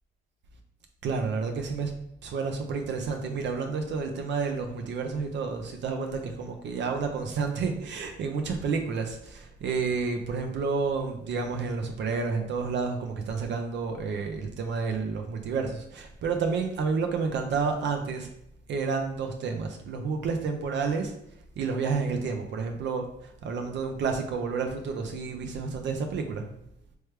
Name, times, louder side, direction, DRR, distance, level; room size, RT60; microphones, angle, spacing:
voice 1, 1.0-1.9 2.2-18.3 18.7-21.1 21.6-26.5, right 5 dB, 65° right, 4 dB, 0.5 m, -30 dB
3.2 x 3.2 x 3.1 m, 0.77 s
cardioid pair, 90°, 20 cm